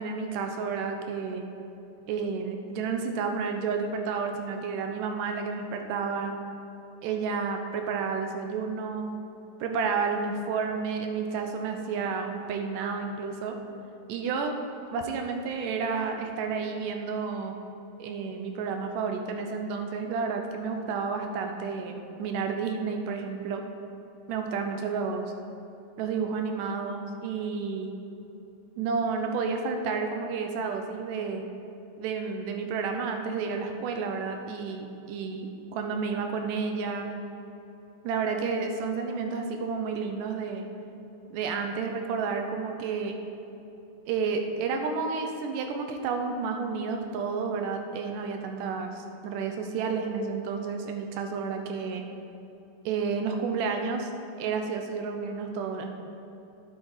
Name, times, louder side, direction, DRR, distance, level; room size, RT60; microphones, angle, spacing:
voice 1, 0.0-1.4 2.1-6.4 7.0-9.1 9.6-13.6 14.1-14.5 14.9-17.6 18.0-23.6 24.3-25.3 26.0-27.9 28.8-31.4 32.0-37.2 38.0-40.6 41.3-43.2 44.1-52.0 52.9-54.1 54.4-55.9, right 5 dB, 75° right, 4 dB, 2.3 m, -31 dB
9.9 x 7.5 x 4.9 m, 2.9 s
omnidirectional pair, 4.0 m